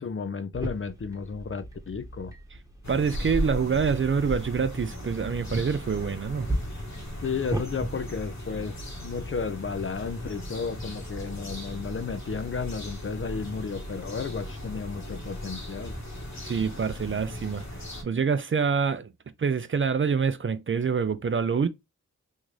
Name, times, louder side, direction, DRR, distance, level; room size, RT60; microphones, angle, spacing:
voice 1, 0.0-2.3 7.2-16.0, left 5 dB, 40° left, 0.5 m, -33 dB
sound 1, 0.5-7.7, right 1 dB, 10° right, 1.1 m, -37 dB
sound 2, 2.8-18.0, equal, 60° left, 1.5 m, -37 dB
voice 2, 2.9-6.5 16.4-17.6 18.0-19.1 19.4-21.7, right 6 dB, 40° right, 0.5 m, -26 dB
3.5 x 2.5 x 3.2 m
cardioid pair, 45°, 31 cm